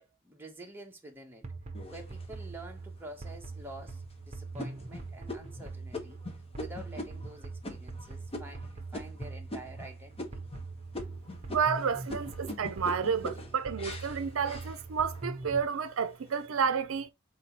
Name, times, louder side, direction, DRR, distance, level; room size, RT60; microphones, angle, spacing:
voice 1, 0.0-1.5 1.9-6.2 6.6-10.5 11.9-12.5 13.2-13.3, right 1 dB, 10° right, 1.0 m, -48 dB
sound 1, 1.4-15.7, right 3 dB, 35° right, 0.9 m, -43 dB
sound 2, 1.7-2.6 3.2-3.3 3.8-4.1 4.6-9.9 10.2-10.7 10.9-15.3 15.7-16.3, left 1 dB, 30° left, 1.0 m, -42 dB
voice 2, 11.5-17.1, right 6 dB, 70° right, 0.5 m, -30 dB
4.0 x 3.2 x 4.0 m
head